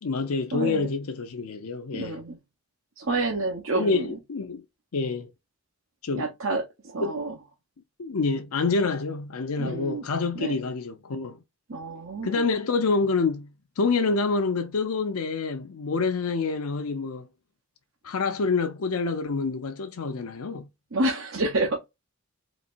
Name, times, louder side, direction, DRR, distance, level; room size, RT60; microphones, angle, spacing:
voice 1, 0.0-2.2 3.7-4.6 4.9-5.3 6.0-6.3 7.0-7.1 8.0-11.4 12.2-13.5 13.8-17.3 18.0-20.7, left 4 dB, 85° left, 0.6 m, -27 dB
voice 2, 0.5-0.9 1.9-2.4 3.0-4.2 6.1-7.3 9.6-10.1 10.3-10.6 11.7-12.4 20.9-21.8, right 2 dB, 65° right, 0.9 m, -29 dB
4.1 x 2.9 x 2.5 m
head